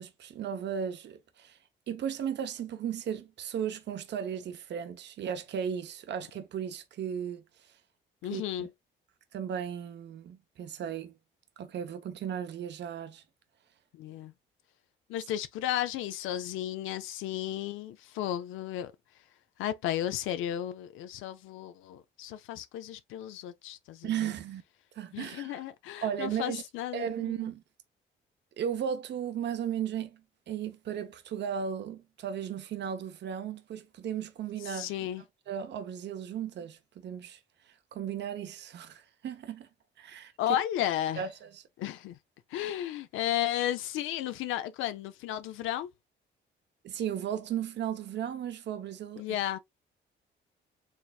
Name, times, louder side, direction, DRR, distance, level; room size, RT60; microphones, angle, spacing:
voice 1, 0.0-1.6 1.9-7.4 8.3-8.4 9.3-11.1 11.6-13.2 24.0-24.6 24.9-25.6 26.0-26.6 26.9-27.6 28.6-30.2 30.5-34.9 35.5-37.4 37.9-39.7 40.0-40.3 41.2-41.6 42.5-42.6 46.8-49.2, right 8 dB, 65° right, 0.8 m, -35 dB
voice 2, 8.2-8.7 13.9-14.3 15.1-18.9 19.6-24.3 25.1-27.5 34.6-35.2 40.4-41.2 41.8-42.2 42.5-45.9 49.2-49.6, left 12 dB, 90° left, 0.4 m, -34 dB
4.4 x 3.3 x 2.3 m
cardioid pair, 90°, 20 cm